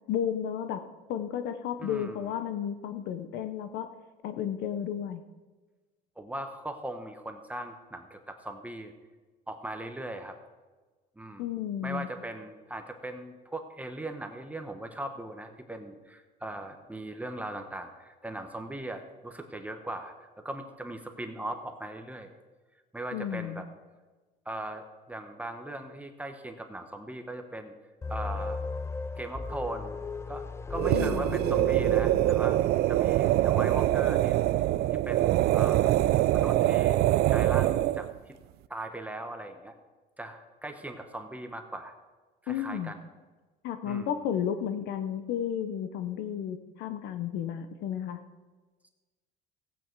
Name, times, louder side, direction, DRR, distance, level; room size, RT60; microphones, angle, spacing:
voice 1, 0.1-0.8 1.1-3.9 4.2-5.2 11.4-12.1 23.1-23.7 30.9-31.2 42.5-42.9 43.6-48.2, left 9 dB, 70° left, 9 dB, 0.8 m, -32 dB
voice 2, 1.8-2.4 6.2-8.9 9.5-10.4 11.2-11.6 11.8-22.3 22.9-23.7 24.4-27.7 28.1-28.6 29.2-30.0 30.3-32.6 32.9-34.4 34.9-36.0 36.3-38.4 38.7-39.7 40.2-41.9 42.4-43.0 43.8-44.1, right 1 dB, 10° right, 5 dB, 1.0 m, -39 dB
sound 1, 28.0-33.0, left 4 dB, 15° left, 0.4 m, -36 dB
sound 2, 30.7-38.1, right 15 dB, 60° right, 0.4 m, -24 dB
16.0 x 8.8 x 4.6 m, 1.3 s
cardioid pair, 120°, 18 cm